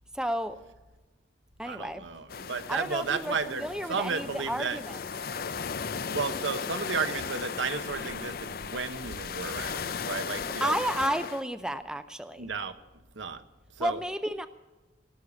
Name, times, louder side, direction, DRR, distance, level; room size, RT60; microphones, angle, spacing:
voice 1, 0.1-0.6 1.6-2.0 2.7-5.0 10.4-12.5 13.8-14.5, equal, 5° right, 10 dB, 0.5 m, -32 dB
voice 2, 1.6-4.8 6.1-10.8 12.4-12.8 13.1-13.4 13.7-14.0, right 5 dB, 90° right, 9 dB, 1.1 m, -33 dB
sound 1, 2.3-11.4, left 6 dB, 50° left, 0.5 m, -36 dB
19.5 x 6.6 x 8.5 m, 1.2 s
head